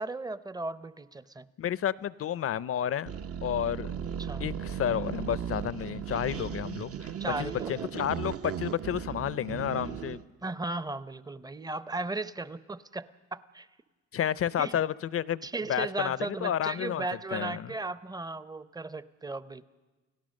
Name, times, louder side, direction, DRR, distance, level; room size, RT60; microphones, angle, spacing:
voice 1, 0.0-1.5 4.2-4.5 7.2-8.1 10.4-13.7 14.6-14.7 15.4-19.6, right 2 dB, 15° right, 15 dB, 0.7 m, -36 dB
voice 2, 1.6-3.1 3.4-3.9 4.4-7.1 7.4-10.2 14.1-17.0 17.3-17.7, left 10 dB, 50° left, 19 dB, 0.6 m, -31 dB
sound 1, 3.1-10.2, right 8 dB, 50° right, 0.8 m, -36 dB
29.5 x 16.5 x 6.5 m, 1.3 s
cardioid pair, 90°, 30 cm